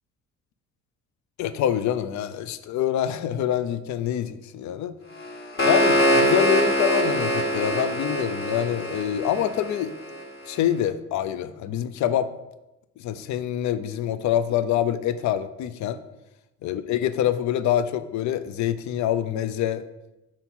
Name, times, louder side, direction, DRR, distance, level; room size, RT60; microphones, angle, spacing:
voice 1, 1.4-4.9 5.6-9.9 10.5-12.3 13.0-16.0 16.6-19.8, left 10 dB, 70° left, 13 dB, 0.5 m, -26 dB
sound 1, 5.2-10.2, equal, 45° left, 1.5 m, -23 dB
5.8 x 4.0 x 4.3 m, 0.97 s
cardioid pair, 90°, 30 cm